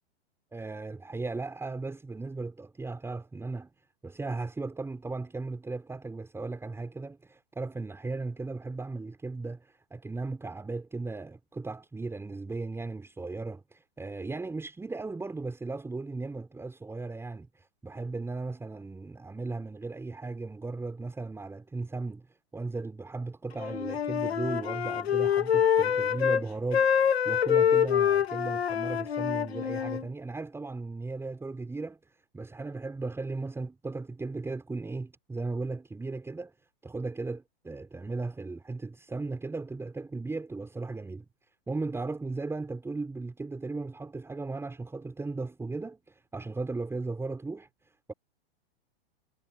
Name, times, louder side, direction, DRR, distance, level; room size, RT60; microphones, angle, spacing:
voice 1, 0.5-3.7 4.0-36.5 36.8-41.3 41.7-48.1, right 3 dB, 10° right, 5.7 m, -36 dB
Wind instrument woodwind instrument, 23.6-26.5 26.7-30.0, left 8 dB, 80° left, 2.1 m, -26 dB
hypercardioid pair, 120°, 31 cm